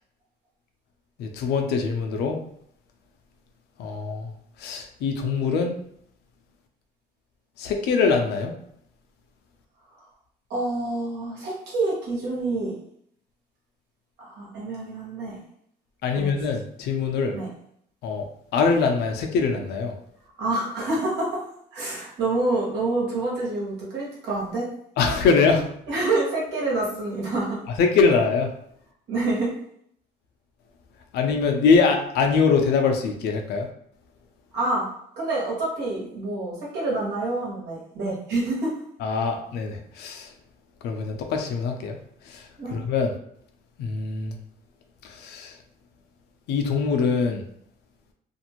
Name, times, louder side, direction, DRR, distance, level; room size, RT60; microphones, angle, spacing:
voice 1, 1.2-2.4 3.8-4.3 4.6-5.7 7.6-8.5 16.0-17.3 18.0-18.2 18.5-19.9 25.0-25.7 27.8-28.5 31.1-33.7 39.0-40.3 40.8-42.0 42.3-43.1 43.8-44.3 45.0-45.5 46.5-47.4, left 5 dB, 75° left, 3 dB, 0.6 m, -23 dB
voice 2, 10.5-12.8 14.2-15.4 16.1-16.4 17.3-17.5 20.4-21.4 21.7-24.7 25.9-27.6 29.1-29.5 34.5-34.9 35.2-38.7 42.6-42.7, right 2 dB, 80° right, -4 dB, 1.3 m, -27 dB
2.6 x 2.5 x 2.9 m, 0.69 s
cardioid pair, 110°, 17 cm